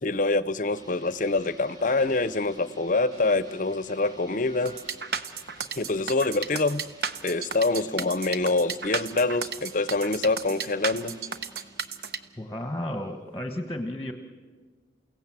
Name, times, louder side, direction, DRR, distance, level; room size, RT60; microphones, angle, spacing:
voice 1, 0.0-4.7 5.8-6.8 7.2-11.2, left 3 dB, 45° left, 15 dB, 0.7 m, -25 dB
sound 1, 0.7-13.2, right 1 dB, 20° right, 2.2 m, -52 dB
sound 2, 1.0-1.1 1.4-6.0 6.4-6.9, equal, 40° right, 2.6 m, -52 dB
sound 3, 4.7-12.2, right 6 dB, 55° right, 0.9 m, -33 dB
voice 2, 12.4-14.1, left 1 dB, 15° left, 5 dB, 1.2 m, -33 dB
29.5 x 17.0 x 7.5 m, 1.5 s
head